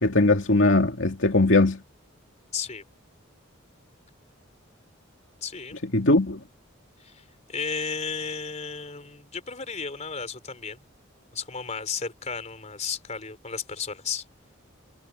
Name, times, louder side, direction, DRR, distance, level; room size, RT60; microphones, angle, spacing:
voice 1, 0.0-1.8 5.9-6.4, left 2 dB, 65° left, 2.6 m, -20 dB
voice 2, 2.5-2.8 5.4-5.8 7.0-7.2 7.5-10.8 11.3-14.2, left 5 dB, 35° left, 4.0 m, -33 dB
head